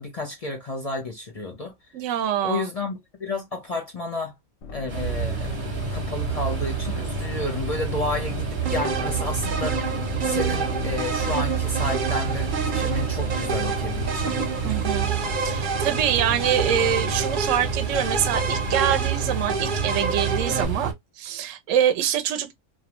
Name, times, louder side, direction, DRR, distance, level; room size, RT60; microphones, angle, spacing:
voice 1, 0.0-1.7 2.4-4.4 4.7-5.6 5.9-9.8 10.2-14.3, left 3 dB, 50° left, 0.4 m, -31 dB
voice 2, 1.9-2.7 14.6-22.5, right 9 dB, 75° right, 0.9 m, -25 dB
sound 1, 4.6-19.1, left 2 dB, 85° left, 1.0 m, -39 dB
sound 2, 4.9-20.9, right 6 dB, 40° right, 0.9 m, -29 dB
sound 3, 8.6-20.6, right 5 dB, 55° right, 0.5 m, -29 dB
2.6 x 2.1 x 2.9 m
omnidirectional pair, 1.4 m